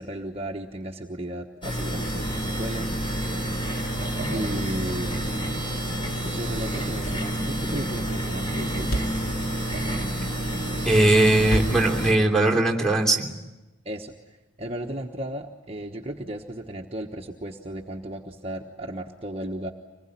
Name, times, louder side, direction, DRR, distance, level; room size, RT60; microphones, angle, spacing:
voice 1, 0.0-3.3 4.3-5.4 6.2-9.1 13.8-19.7, right 1 dB, 30° right, 1 dB, 1.2 m, -35 dB
sound 1, 1.6-12.1, right 1 dB, 25° left, 4.3 m, -29 dB
Thump thud, 8.9-12.9, right 1 dB, 85° left, 2.7 m, -32 dB
voice 2, 10.8-13.3, right 2 dB, 5° left, -1 dB, 3.0 m, -20 dB
25.5 x 20.0 x 10.0 m, 1.1 s
head